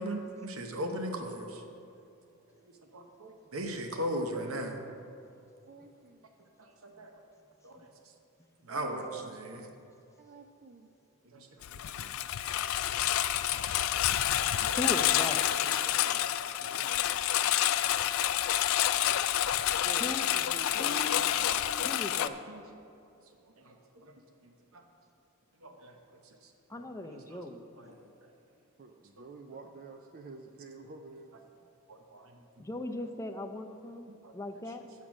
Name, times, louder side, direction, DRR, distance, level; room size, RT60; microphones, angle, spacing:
voice 1, 0.0-1.6 2.6-4.8 6.6-7.2 7.6-7.9 8.7-9.7 11.2-12.1 12.5-12.6 14.6-14.8 16.4-17.1 19.0-19.3 20.7-22.6 23.4-24.1 24.4-24.8 25.6-26.0 26.2-27.4 27.8-28.3 29.2-29.6 31.9-32.6 34.0-34.4, equal, 75° right, 4 dB, 0.8 m, -40 dB
voice 2, 5.7-6.3 8.6-9.7 10.2-10.9 12.0-12.2 13.5-13.8 15.8-16.3 16.8-17.3 19.8-21.3 28.8-31.4, right 3 dB, 45° right, 6 dB, 0.4 m, -48 dB
Engine, 11.6-22.3, left 12 dB, 75° left, 0.3 m, -28 dB
voice 3, 14.6-15.5 20.0-20.2 20.8-21.2 21.8-22.4 26.7-27.6 32.6-34.9, left 1 dB, 15° left, 5 dB, 0.5 m, -38 dB
8.2 x 7.3 x 6.1 m, 2.7 s
head